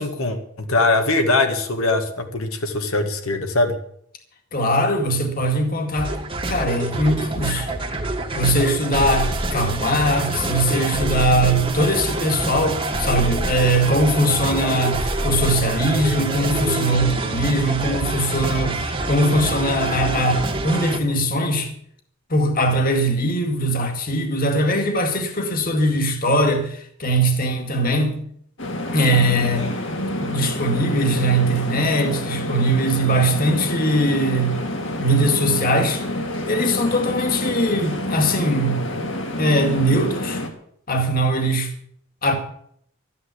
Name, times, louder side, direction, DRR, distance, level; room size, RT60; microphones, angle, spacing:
voice 1, 0.0-3.8, left 2 dB, 80° left, 1.9 m, -21 dB
voice 2, 4.5-6.2 6.5-7.7 8.3-21.7 22.3-28.2 28.9-29.7 30.2-34.5 35.0-36.0 36.5-38.8 39.4-40.4 40.9-41.7 42.2-42.3, right 1 dB, 40° left, 2.1 m, -21 dB
sound 1, 5.9-21.0, right 2 dB, 25° right, 1.4 m, -26 dB
sound 2, 28.6-40.5, left 1 dB, 60° left, 2.3 m, -28 dB
13.0 x 9.7 x 8.3 m
head